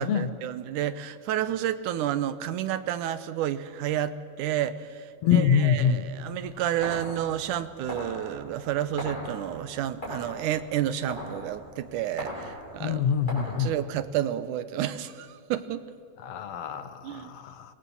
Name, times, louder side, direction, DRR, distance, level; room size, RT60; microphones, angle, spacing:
voice 1, 0.0-13.1 13.4-15.8 17.0-17.3, right 11 dB, 80° right, 13 dB, 2.4 m, -30 dB
voice 2, 5.2-6.1 12.8-13.7 16.2-17.7, left 7 dB, 65° left, 11 dB, 1.9 m, -25 dB
sound 1, 6.2-13.6, equal, 15° left, 6.1 m, -40 dB
26.5 x 21.5 x 7.2 m, 2.3 s
omnidirectional pair, 3.6 m